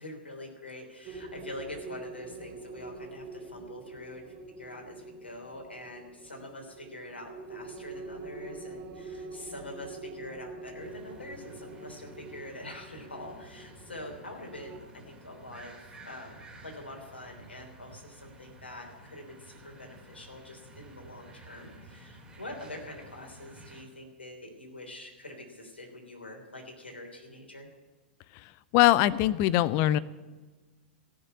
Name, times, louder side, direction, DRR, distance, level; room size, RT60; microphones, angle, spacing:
voice 1, 0.0-27.7, left 1 dB, 85° left, 2 dB, 3.2 m, -45 dB
sound 1, 1.1-14.8, right 3 dB, 35° right, 2.7 m, -45 dB
sound 2, 10.8-23.8, right 1 dB, 10° right, 3.8 m, -52 dB
voice 2, 28.4-30.0, left 14 dB, 40° left, 17 dB, 0.6 m, -23 dB
15.0 x 6.7 x 9.6 m, 1.3 s
figure-of-eight pair, 100°, 6 cm